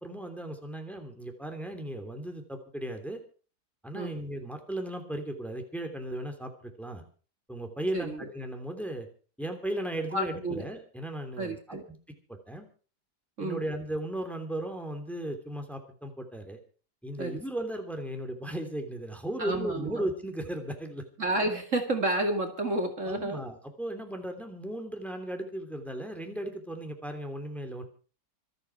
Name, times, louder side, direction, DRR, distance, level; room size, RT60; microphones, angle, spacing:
voice 1, 0.0-3.2 3.8-6.5 6.8-7.0 7.5-9.1 9.4-12.0 12.5-12.6 13.4-16.6 17.0-21.0 23.0-27.8, right 1 dB, ahead, 5 dB, 2.9 m, -36 dB
voice 2, 7.9-8.3 10.1-10.6 11.4-11.8 13.4-13.6 17.2-17.4 19.4-20.1 21.2-23.4, right 2 dB, 45° right, 5 dB, 2.6 m, -30 dB
26.0 x 9.0 x 4.7 m, 0.39 s
omnidirectional pair, 1.8 m